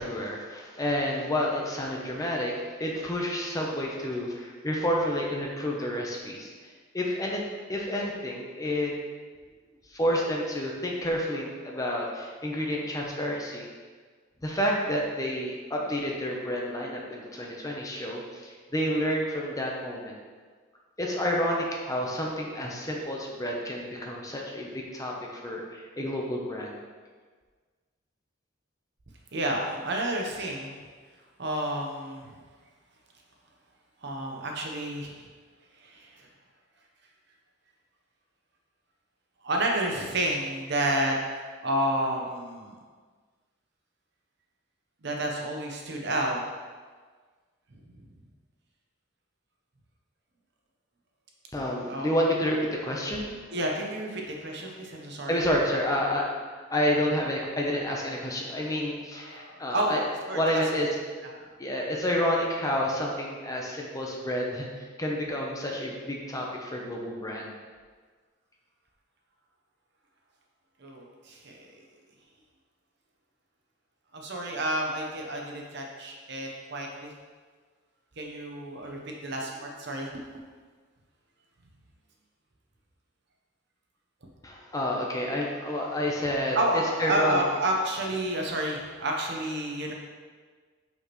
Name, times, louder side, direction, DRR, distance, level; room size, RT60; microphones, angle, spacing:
voice 1, 0.0-2.5 2.8-6.5 6.9-7.4 7.7-8.9 9.9-13.7 14.4-20.2 21.0-26.8 51.5-53.3 55.3-56.3 56.7-60.0 60.3-60.9 61.3-67.5 84.4-86.6 87.0-87.4, equal, 15° left, -1 dB, 0.7 m, -29 dB
voice 2, 29.3-30.8 31.4-32.4 34.0-35.3 35.8-36.3 39.4-41.2 41.6-42.8 45.0-46.4 47.7-48.0 51.8-52.1 53.5-55.4 59.3-60.0 60.3-60.6 70.8-71.8 74.1-77.1 78.2-80.1 86.5-89.9, right 1 dB, 60° right, 0 dB, 0.9 m, -30 dB
6.1 x 5.6 x 3.1 m, 1.5 s
head